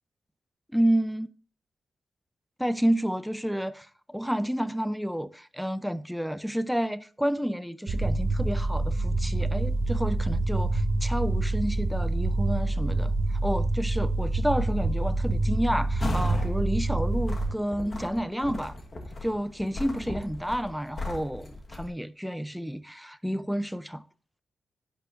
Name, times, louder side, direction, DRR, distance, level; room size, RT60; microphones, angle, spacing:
voice 1, 0.7-1.3 2.6-13.1 13.4-18.8 19.2-24.0, equal, ahead, 0.4 m, -30 dB
sound 1, 7.9-17.5, right 2 dB, 45° right, 0.9 m, -26 dB
sound 2, 16.0-16.5 17.0-21.9, left 2 dB, 30° left, 1.3 m, -37 dB
10.5 x 9.0 x 2.5 m
wide cardioid pair, 175°, 0 cm